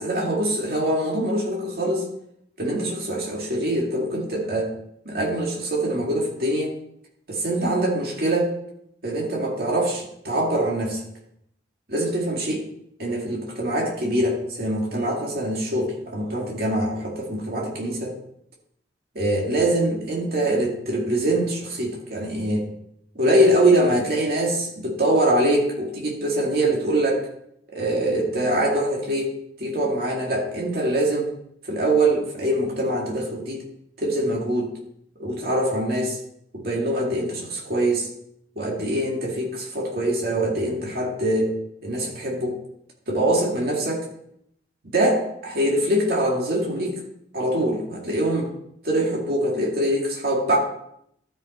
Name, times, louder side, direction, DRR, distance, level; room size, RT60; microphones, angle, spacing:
voice 1, 0.0-2.0 2.6-4.7 5.0-6.7 7.3-8.5 9.0-11.0 11.9-12.6 13.0-18.2 19.2-22.7 23.2-27.3 27.7-29.3 29.6-31.3 31.6-33.6 34.0-34.7 35.2-36.2 36.5-38.1 38.6-41.5 41.8-42.6 43.1-44.1 44.9-46.9 47.3-48.5 48.8-50.6, right 1 dB, 55° right, -2 dB, 2.2 m, -23 dB
12.5 x 5.4 x 4.4 m, 0.73 s
head